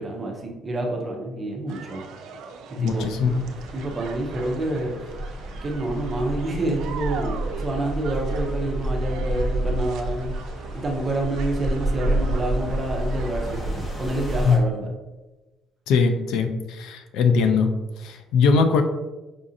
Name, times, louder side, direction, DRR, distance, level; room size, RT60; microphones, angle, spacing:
voice 1, 0.0-2.0 2.7-3.0 3.7-5.0 5.6-10.3 10.7-14.9, right 1 dB, 20° right, 0 dB, 0.5 m, -28 dB
sound 1, 1.7-13.7, right 5 dB, 70° right, 0.4 m, -41 dB
voice 2, 2.8-3.3 14.4-14.6 15.9-17.7 18.0-18.8, left 5 dB, 70° left, 7 dB, 0.3 m, -20 dB
sound 2, 2.9-14.6, right 1 dB, 20° left, 0.7 m, -29 dB
4.9 x 2.5 x 2.6 m, 1.1 s
cardioid pair, 180°, 0 cm